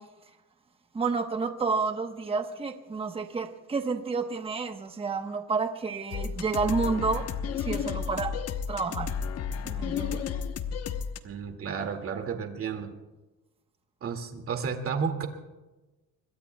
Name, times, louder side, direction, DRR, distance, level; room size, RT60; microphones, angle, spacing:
voice 1, 0.9-7.3 7.6-8.4 8.7-9.1 9.6-10.2, right 4 dB, 15° right, 6 dB, 1.1 m, -30 dB
sound 1, 6.1-11.2, left 7 dB, 50° left, 1.1 m, -32 dB
voice 2, 11.2-12.9 14.0-15.3, right 6 dB, 45° right, 5 dB, 2.2 m, -32 dB
25.5 x 22.5 x 2.3 m, 1.1 s
cardioid pair, 130°, 32 cm